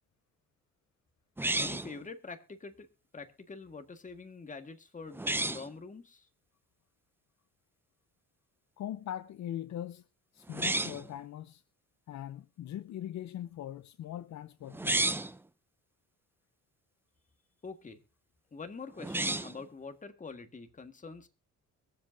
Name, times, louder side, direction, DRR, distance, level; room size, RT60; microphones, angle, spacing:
sound 1, 1.4-2.0 5.1-5.7 10.5-11.1 14.7-15.4 19.0-19.6, right 2 dB, 5° right, 0.5 m, -31 dB
voice 1, 1.6-2.9 3.1-6.3 17.6-18.0 18.5-21.3, left 4 dB, 25° left, 1.7 m, -45 dB
voice 2, 8.8-10.0 10.3-11.6 12.1-15.1, left 11 dB, 65° left, 0.7 m, -41 dB
23.0 x 7.7 x 2.7 m
cardioid pair, 90°, 30 cm